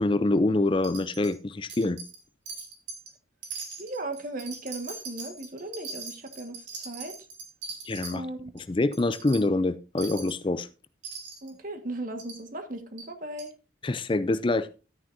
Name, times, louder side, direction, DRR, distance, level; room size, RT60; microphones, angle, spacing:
voice 1, 0.0-2.0 7.8-8.3 8.5-10.7 13.8-14.7, left 2 dB, 25° left, 0.4 m, -25 dB
Wind chime, 0.8-1.4 1.7-2.2 2.5-3.1 3.4-8.1 8.6-8.7 8.9-9.4 10.0-10.4 11.0-11.5 12.2-12.4 13.0-13.1 13.4-13.5, right 4 dB, 70° right, 3.8 m, -40 dB
voice 2, 3.8-7.2 8.1-8.6 11.4-13.5, right 2 dB, 45° right, 1.6 m, -37 dB
13.0 x 9.5 x 2.6 m
head